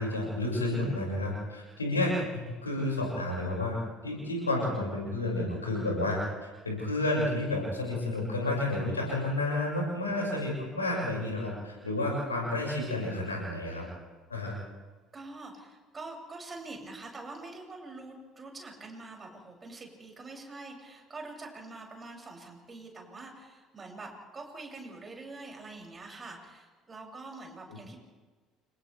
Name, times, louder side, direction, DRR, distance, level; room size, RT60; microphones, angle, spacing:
voice 1, 0.0-3.8 4.0-13.8 14.3-14.6 27.7-27.8, left 2 dB, 90° left, -2 dB, 6.2 m, -31 dB
voice 2, 15.1-28.0, right 3 dB, 25° right, 0 dB, 7.2 m, -45 dB
29.5 x 28.0 x 3.5 m, 1.3 s
figure-of-eight pair, 60°, 0 cm